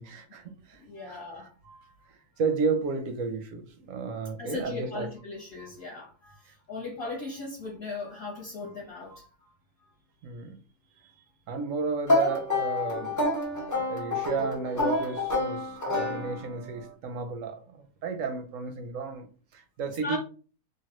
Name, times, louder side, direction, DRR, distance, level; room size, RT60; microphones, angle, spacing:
voice 1, 0.0-0.8 1.1-1.2 2.1-5.1 10.2-10.6 11.5-13.1 13.7-19.3 19.5-20.2, right 5 dB, 70° right, 0.8 m, -32 dB
voice 2, 0.7-1.9 4.4-9.5 9.8-9.9 19.9-20.2, left 3 dB, 40° left, 1.0 m, -38 dB
sound 1, 12.1-16.7, left 2 dB, 20° left, 0.5 m, -28 dB
3.1 x 2.3 x 2.9 m
omnidirectional pair, 1.6 m